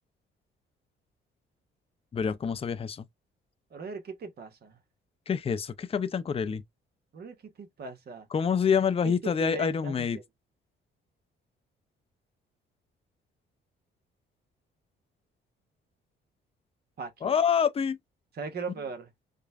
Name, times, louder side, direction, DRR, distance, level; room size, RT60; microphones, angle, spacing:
voice 1, 2.1-3.1 5.3-6.6 8.3-10.2 17.2-18.0, left 7 dB, 30° left, 0.5 m, -27 dB
voice 2, 3.7-4.8 7.1-8.3 9.0-10.2 17.0-17.3 18.4-19.1, right 4 dB, 55° right, 1.1 m, -39 dB
5.0 x 2.2 x 2.4 m
cardioid pair, 90°, 20 cm